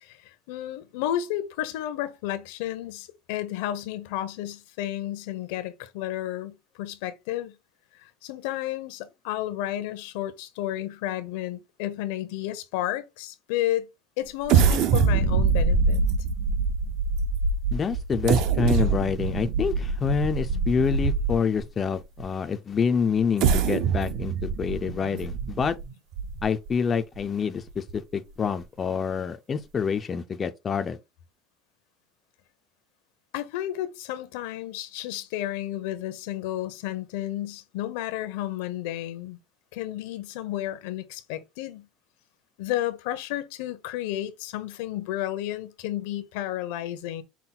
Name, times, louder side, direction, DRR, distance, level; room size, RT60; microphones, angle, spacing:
voice 1, 0.0-7.5 8.0-13.9 14.2-16.0 33.3-39.4 39.7-41.9 42.6-47.2, left 13 dB, 80° left, 0.7 m, -32 dB
sound 1, 14.5-21.6 22.2-22.3 23.2-26.7 27.2-27.3 27.7-27.9, right 5 dB, 55° right, 0.6 m, -24 dB
voice 2, 17.7-25.8 26.4-31.0, left 6 dB, 20° left, 0.4 m, -27 dB
5.7 x 2.2 x 3.9 m
cardioid pair, 165°, 0 cm